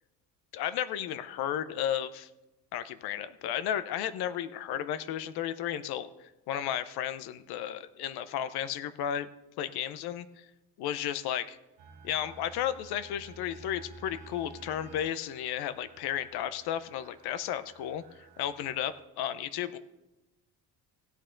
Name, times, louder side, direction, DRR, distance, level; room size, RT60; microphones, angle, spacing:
voice 1, 0.5-2.3 2.7-6.1 6.5-9.3 9.6-10.3 10.8-11.6 12.0-18.0 18.4-19.8, left 10 dB, 75° left, 13 dB, 0.7 m, -33 dB
sound 1, 11.8-19.0, right 4 dB, 80° right, 1.5 m, -53 dB
16.0 x 8.7 x 3.8 m, 0.98 s
cardioid pair, 145°, 38 cm